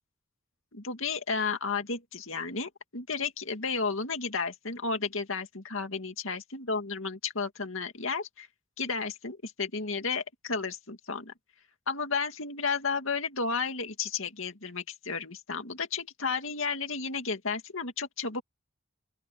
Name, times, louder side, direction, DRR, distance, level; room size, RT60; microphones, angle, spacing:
voice 1, 0.7-8.5 8.8-11.3 11.9-18.4, left 4 dB, 65° left, 2.3 m, -33 dB
open air
head